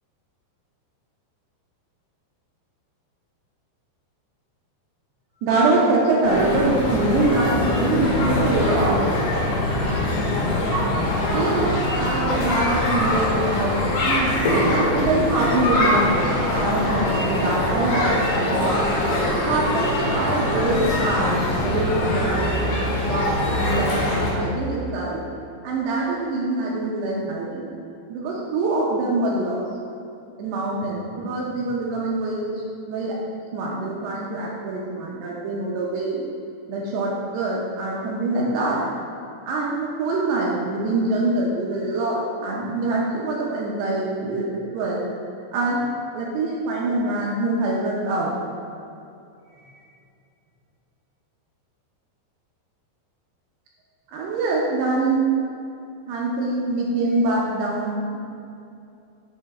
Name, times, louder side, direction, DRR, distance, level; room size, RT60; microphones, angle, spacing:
voice 1, 5.4-9.1 11.3-13.8 14.0-18.7 19.2-22.6 22.9-25.2 25.6-27.7 28.1-29.7 30.4-32.5 32.9-33.2 33.5-36.3 36.7-38.9 39.5-45.0 45.5-45.9 46.1-48.3 54.1-55.2 56.1-58.2, right 2 dB, 80° right, -4 dB, 2.6 m, -24 dB
sound 1, 6.2-24.3, left 1 dB, 75° left, 1.9 m, -23 dB
8.9 x 3.1 x 4.2 m, 2.6 s
omnidirectional pair, 5.0 m